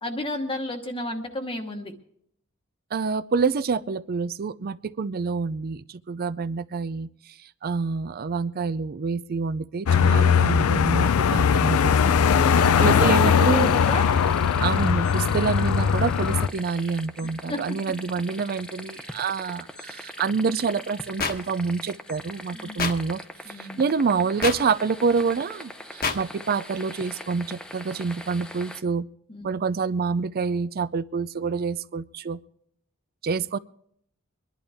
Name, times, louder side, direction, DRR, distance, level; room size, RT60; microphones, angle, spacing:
voice 1, 0.0-1.9 12.3-14.1 17.2-17.6 22.5-22.8 23.5-23.8 29.3-29.5, left 1 dB, 25° left, 3 dB, 1.1 m, -32 dB
voice 2, 2.9-7.1 7.6-12.1 12.4-13.8 14.6-23.2 23.6-29.1 29.4-32.4 33.2-33.6, right 5 dB, 45° right, 17 dB, 0.4 m, -27 dB
sound 1, 9.9-16.5, left 7 dB, 75° left, 0.4 m, -20 dB
sound 2, 12.6-28.8, left 1 dB, 5° left, 0.7 m, -41 dB
sound 3, 21.2-21.3 22.8-22.9 24.4-24.6 26.0-26.2, left 5 dB, 45° left, 1.2 m, -25 dB
24.0 x 11.5 x 3.5 m, 0.68 s
head